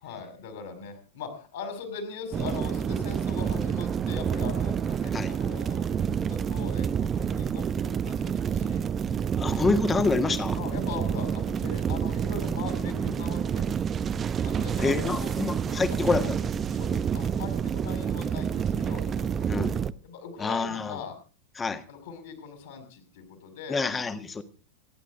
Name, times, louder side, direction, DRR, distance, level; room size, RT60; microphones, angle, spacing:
voice 1, 0.0-8.8 10.6-13.7 14.4-16.3 16.7-19.5 20.0-21.2 21.9-24.1, left 5 dB, 55° left, 5.7 m, -41 dB
sound 1, 2.3-19.9, right 7 dB, 25° right, 0.7 m, -28 dB
voice 2, 9.4-10.6 14.8-16.5 19.5-19.8 20.4-21.0 21.6-21.8 23.7-24.4, left 4 dB, 15° left, 1.7 m, -27 dB
27.5 x 11.0 x 3.7 m
figure-of-eight pair, 90°, 0 cm